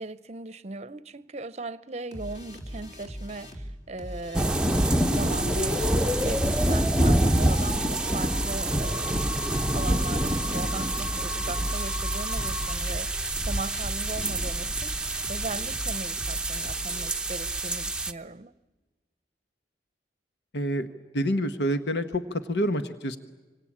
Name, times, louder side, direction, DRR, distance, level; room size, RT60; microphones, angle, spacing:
voice 1, 0.0-9.4 9.7-18.5, right 2 dB, 35° right, 16 dB, 0.8 m, -38 dB
sound 1, 2.1-17.1, equal, 40° left, 3.7 m, -40 dB
sound 2, 4.3-18.1, right 1 dB, 5° right, 0.8 m, -27 dB
sound 3, 4.9-12.7, left 2 dB, 15° left, 2.9 m, -36 dB
voice 2, 20.5-20.9 21.1-23.2, equal, 70° left, 9 dB, 1.2 m, -27 dB
26.5 x 25.5 x 8.7 m, 1.2 s
head